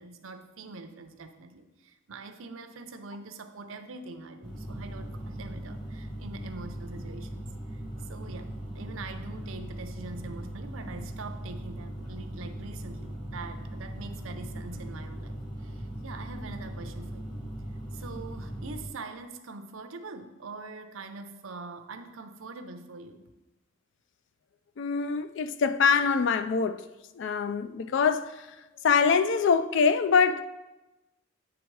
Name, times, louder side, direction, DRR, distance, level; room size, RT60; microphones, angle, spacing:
voice 1, 0.0-17.4 17.9-23.3, right 3 dB, 75° right, 0.6 m, -44 dB
sound 1, 4.4-18.8, right 1 dB, 20° left, 1.4 m, -39 dB
voice 2, 24.8-26.8 27.2-28.5 28.8-30.4, left 5 dB, 60° left, 0.4 m, -24 dB
8.6 x 3.5 x 4.7 m
head